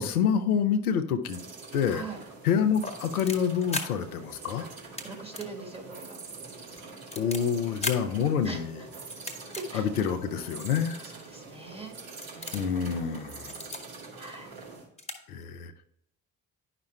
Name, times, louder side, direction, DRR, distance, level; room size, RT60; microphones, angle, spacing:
voice 1, 0.0-1.4 1.7-2.1 2.4-4.7 7.1-8.8 9.7-11.0 12.5-13.6 15.3-15.7, left 7 dB, 80° left, 8 dB, 0.5 m, -27 dB
sound 1, 1.2-14.9, right 4 dB, 55° right, 1.9 m, -45 dB
voice 2, 1.9-2.2 5.0-6.2 8.4-8.6 9.6-9.9 11.0-11.9 12.3-13.2 14.2-14.5, right 3 dB, 15° right, 2 dB, 1.9 m, -42 dB
sound 2, 2.8-3.9 4.8-5.1 5.3-5.5 5.8-5.9 6.5-7.4 7.8-8.0 9.1-9.6 10.3-10.4 11.2-11.3 11.8-11.9 12.2-12.7 13.4-13.8 14.7-14.8 15.0-15.2 15.4-15.5, left 2 dB, 15° left, 1.2 m, -35 dB
10.5 x 5.8 x 2.2 m, 0.75 s
figure-of-eight pair, 40°, 43 cm